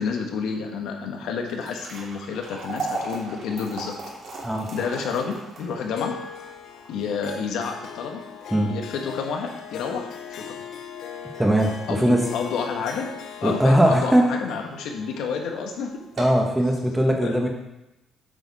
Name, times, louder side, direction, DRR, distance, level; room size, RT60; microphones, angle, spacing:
voice 1, 0.0-3.9 4.7-6.1 6.9-8.2 8.6-10.5 11.9-13.1 13.4-15.9 17.2-17.3, left 5 dB, 80° left, 2 dB, 1.4 m, -29 dB
sound 1, 1.4-13.7 14.1-14.2 14.9-15.1 15.4-15.5 16.0-16.5, right 3 dB, 55° right, 2.8 m, -38 dB
Harp, 5.9-16.5, left 8 dB, 55° left, 0.7 m, -40 dB
voice 2, 11.4-12.2 13.4-14.2 16.2-17.5, right 1 dB, 5° right, 1 dB, 1.2 m, -20 dB
8.0 x 6.8 x 4.2 m, 0.95 s
cardioid pair, 155°, 0 cm